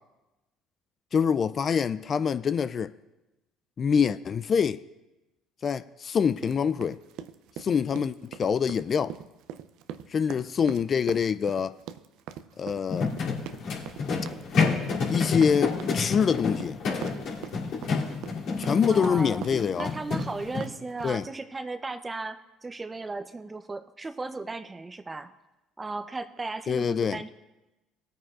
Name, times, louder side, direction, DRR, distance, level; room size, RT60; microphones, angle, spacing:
voice 1, 1.1-2.9 3.8-4.8 5.6-7.0 7.6-9.1 10.1-11.8 12.6-13.1 15.1-16.8 18.6-19.9 21.0-21.3 26.7-27.2, left 6 dB, 40° left, 0.3 m, -25 dB
sound 1, 6.4-21.3, right 10 dB, 70° right, 0.5 m, -42 dB
sound 2, 12.9-20.6, left 4 dB, 65° left, 2.9 m, -29 dB
voice 2, 18.8-19.4 19.8-25.3 25.8-27.3, right 3 dB, 20° right, 0.7 m, -36 dB
18.0 x 9.0 x 2.5 m
hypercardioid pair, 70°, 0 cm